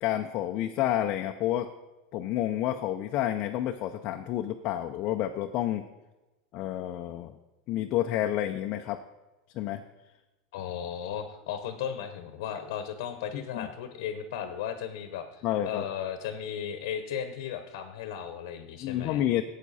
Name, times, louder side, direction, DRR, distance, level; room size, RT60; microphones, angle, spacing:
voice 1, 0.0-1.7 2.1-5.8 6.5-7.3 7.7-9.0 9.5-9.8 13.3-13.7 15.4-15.8 18.8-19.4, left 12 dB, 45° left, 4 dB, 0.6 m, -29 dB
voice 2, 10.5-15.2 15.6-19.2, left 8 dB, 75° left, 8 dB, 1.1 m, -35 dB
12.0 x 8.3 x 4.2 m, 1.1 s
supercardioid pair, 135°, 2 cm